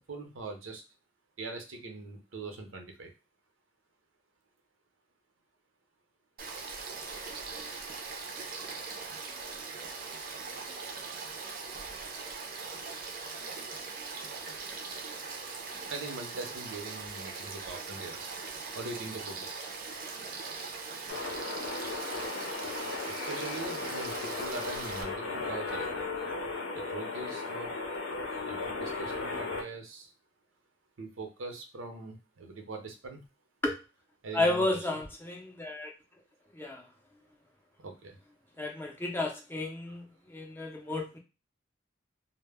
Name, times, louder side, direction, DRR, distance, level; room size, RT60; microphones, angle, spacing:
voice 1, 0.1-0.8 1.4-3.1 15.9-18.3 18.7-19.5 23.0-25.9 26.9-27.7 28.5-30.1 31.0-33.2 34.2-35.0 37.8-38.2, right 3 dB, 85° right, 4 dB, 0.6 m, -42 dB
Frog / Stream, 6.4-25.0, right 4 dB, 45° right, 0.4 m, -41 dB
sound 1, 21.1-29.6, left 3 dB, 80° left, 0.6 m, -36 dB
voice 2, 34.3-35.9 36.5-36.8 38.6-41.2, left 2 dB, 10° left, 1 dB, 0.4 m, -32 dB
2.0 x 2.0 x 3.4 m, 0.30 s
head